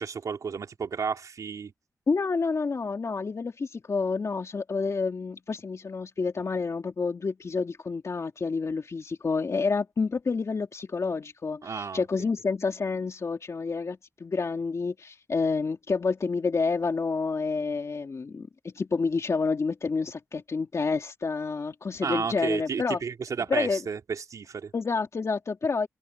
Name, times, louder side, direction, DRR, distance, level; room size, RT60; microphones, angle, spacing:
voice 1, 0.0-1.7 11.6-12.0 22.0-24.7, right 6 dB, 80° right, 3.7 m, -32 dB
voice 2, 2.1-18.5 18.7-23.0 23.5-23.8 24.7-25.9, left 4 dB, 60° left, 2.9 m, -29 dB
cardioid pair, 60°, 6 cm